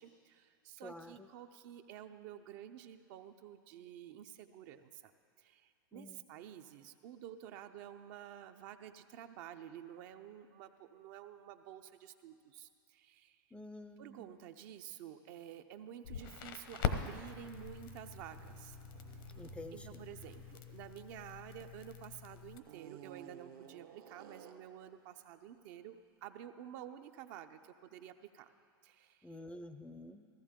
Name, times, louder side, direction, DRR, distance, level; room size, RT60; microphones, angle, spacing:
voice 1, 0.0-5.1 5.4-13.4 14.0-18.8 19.7-28.5 28.8-29.4, right 10 dB, 55° right, 8 dB, 0.7 m, -51 dB
voice 2, 0.8-1.3 5.9-6.2 13.5-14.3 19.4-20.0 29.2-30.3, left 1 dB, 10° left, 9 dB, 0.5 m, -49 dB
Crackle, 16.0-22.6, left 7 dB, 65° left, 1.0 m, -43 dB
sound 1, 17.2-22.0 22.6-24.8, right 6 dB, 70° right, 1.2 m, -55 dB
15.5 x 14.0 x 3.7 m, 2.4 s
hypercardioid pair, 115°, 12 cm